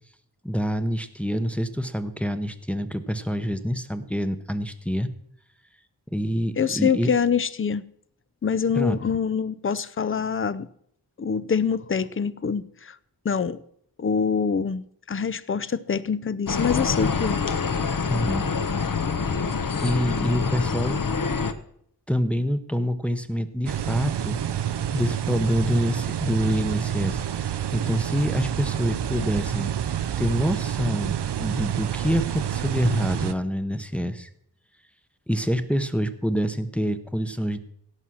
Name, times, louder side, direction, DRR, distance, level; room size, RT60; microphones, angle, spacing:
voice 1, 0.4-5.1 6.1-7.1 8.7-9.0 18.1-18.5 19.8-21.0 22.1-29.7 30.2-34.3 35.3-37.6, equal, 5° left, 0.8 m, -26 dB
voice 2, 6.6-7.8 8.4-10.7 11.2-13.0 13.2-13.6 14.0-17.4, left 6 dB, 30° left, 0.5 m, -25 dB
sound 1, 16.5-21.5, left 5 dB, 55° left, 0.9 m, -26 dB
sound 2, 23.7-33.3, right 10 dB, 85° right, 0.6 m, -28 dB
17.0 x 5.7 x 6.3 m
wide cardioid pair, 95°, 40 cm